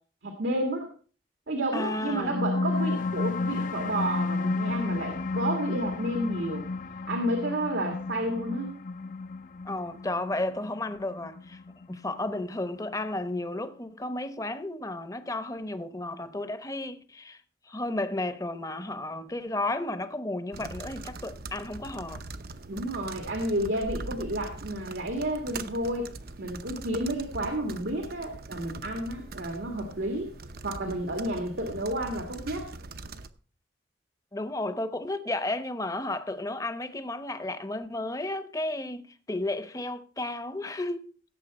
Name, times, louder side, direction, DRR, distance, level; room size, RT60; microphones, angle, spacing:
voice 1, 0.2-0.9 1.5-6.7 7.1-8.8 22.7-26.1 26.4-30.3 30.6-32.7, right 1 dB, 85° right, 2.0 m, -31 dB
voice 2, 1.7-2.4 9.6-11.6 11.9-17.4 17.7-22.3 34.3-41.1, left 2 dB, 20° left, 0.8 m, -33 dB
sound 1, 1.9-12.9, left 3 dB, 45° left, 0.5 m, -32 dB
sound 2, 20.5-33.3, right 3 dB, 55° right, 0.7 m, -42 dB
16.5 x 7.5 x 4.2 m
head